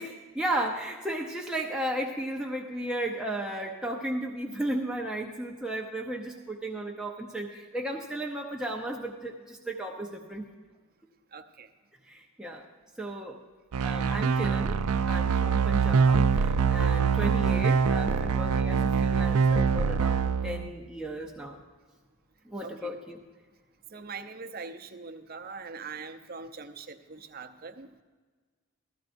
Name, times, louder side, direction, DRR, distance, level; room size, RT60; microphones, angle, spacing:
voice 1, 0.0-10.5 12.1-12.7 13.0-13.4 13.8-14.8 15.0-21.6 22.5-23.2, right 1 dB, 5° right, 0 dB, 0.6 m, -34 dB
voice 2, 11.3-11.7 22.6-23.0 23.9-28.0, right 4 dB, 40° right, 5 dB, 0.7 m, -42 dB
sound 1, 13.7-20.7, right 5 dB, 80° right, 0.4 m, -24 dB
15.5 x 13.5 x 2.6 m, 1.4 s
head